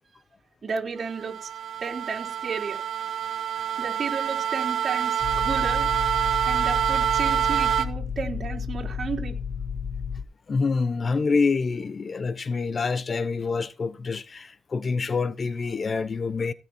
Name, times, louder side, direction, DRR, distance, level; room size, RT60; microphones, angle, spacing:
voice 1, 0.6-1.5 1.8-2.8 3.8-5.9 6.5-9.3, right 5 dB, 50° right, 4.0 m, -33 dB
sound 1, 1.0-7.8, right 9 dB, 70° right, 1.9 m, -26 dB
sound 2, 5.2-10.2, left 6 dB, 60° left, 1.2 m, -32 dB
voice 2, 10.5-16.5, left 4 dB, 45° left, 0.9 m, -26 dB
17.0 x 6.3 x 4.5 m
cardioid pair, 85°, 0 cm